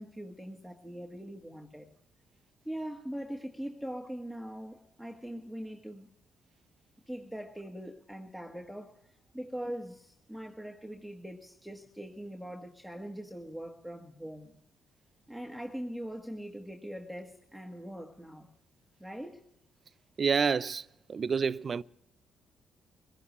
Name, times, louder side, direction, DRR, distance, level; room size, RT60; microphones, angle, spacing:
voice 1, 0.0-1.9 2.6-6.1 7.1-9.0 9.3-14.6 15.3-18.5 19.0-19.4, equal, ahead, 1.6 m, -42 dB
voice 2, 20.2-21.8, right 6 dB, 40° right, 0.5 m, -29 dB
24.5 x 17.0 x 3.1 m
cardioid pair, 90°, 0 cm